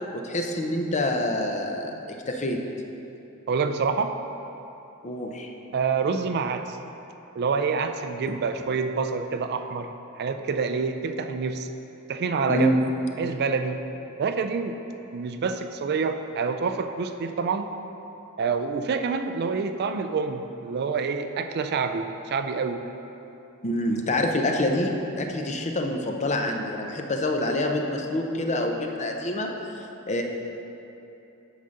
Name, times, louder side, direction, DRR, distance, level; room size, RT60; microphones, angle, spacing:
voice 1, 0.1-1.9 2.3-2.6 5.0-5.5 12.5-12.8 23.6-29.5 30.1-30.2, left 1 dB, 35° left, 3 dB, 0.6 m, -26 dB
voice 2, 3.5-4.1 5.7-6.8 7.4-11.7 12.1-12.7 13.2-13.8 14.2-14.8 15.1-17.7 18.4-22.8, right 5 dB, 50° right, 8 dB, 0.4 m, -27 dB
8.9 x 4.0 x 6.5 m, 2.9 s
head